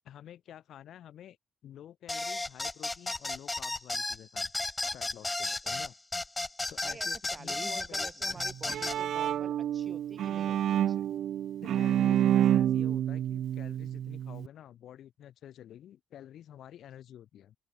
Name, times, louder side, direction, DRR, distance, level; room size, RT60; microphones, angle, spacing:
voice 1, 0.0-1.4 1.6-4.5 4.9-5.9 6.7-8.4 11.6-17.6, left 11 dB, 70° left, 2.6 m, -50 dB
sound 1, 2.1-9.0, left 2 dB, 15° left, 1.0 m, -33 dB
voice 2, 6.8-11.1, right 4 dB, 35° right, 4.8 m, -48 dB
Bowed string instrument, 8.4-14.5, right 10 dB, 70° right, 0.5 m, -28 dB
open air
cardioid pair, 90°, 0 cm